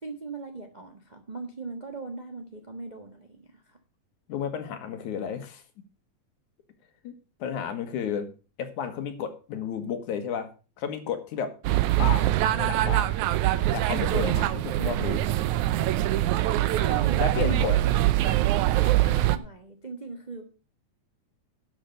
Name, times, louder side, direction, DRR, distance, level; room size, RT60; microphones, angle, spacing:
voice 1, 0.0-3.8 16.7-17.8 18.2-20.4, right 3 dB, 50° right, 4 dB, 0.5 m, -39 dB
voice 2, 4.3-5.6 7.0-7.1 7.4-8.3 8.6-10.5 10.8-11.5 12.0-13.2 13.7-15.2 17.2-17.8, left 7 dB, 90° left, 8 dB, 3.0 m, -32 dB
sound 1, 11.6-19.4, right 15 dB, 85° right, 2.1 m, -23 dB
11.0 x 6.8 x 6.5 m, 0.34 s
omnidirectional pair, 3.4 m